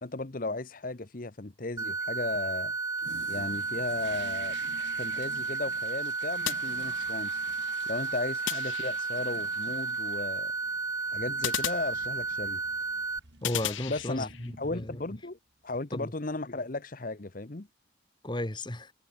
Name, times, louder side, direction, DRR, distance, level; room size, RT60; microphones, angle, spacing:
voice 1, 0.0-2.7 3.3-4.6 5.0-7.4 7.9-10.5 11.1-12.6 13.9-14.3 14.6-15.4 15.6-17.7, left 2 dB, 45° left, 1.0 m, -35 dB
sound 1, 1.8-13.2, right 4 dB, 15° right, 1.1 m, -33 dB
Toilet flush, 3.0-15.3, right 4 dB, 65° right, 4.3 m, -50 dB
sound 2, 6.4-7.4 8.5-9.3 11.4-12.5 13.4-14.5, left 12 dB, 80° left, 0.7 m, -36 dB
voice 2, 13.4-15.0 15.9-16.1 18.2-18.9, left 1 dB, 25° left, 1.6 m, -34 dB
head